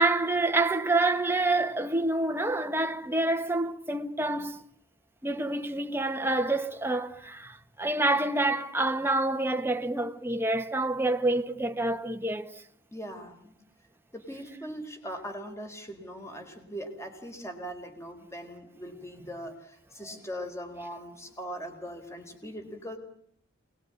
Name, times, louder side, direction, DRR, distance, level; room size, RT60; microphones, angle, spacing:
voice 1, 0.0-4.6 5.2-12.6, right 2 dB, 10° right, 1.4 m, -27 dB
voice 2, 12.9-13.5 14.1-23.0, equal, 15° left, 4.4 m, -40 dB
28.0 x 20.5 x 9.7 m
head